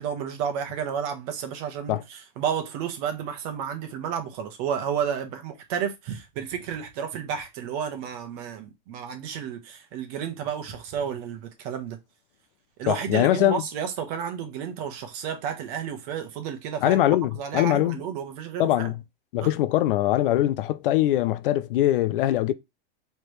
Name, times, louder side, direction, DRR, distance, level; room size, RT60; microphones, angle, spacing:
voice 1, 0.0-12.0 12.8-17.1 17.3-18.9 19.4-19.5, right 8 dB, 40° right, 1.0 m, -31 dB
voice 2, 12.9-13.6 16.8-18.0 18.6-19.0 19.3-22.5, left 14 dB, 65° left, 0.5 m, -22 dB
4.7 x 3.4 x 3.1 m
supercardioid pair, 165°, 29 cm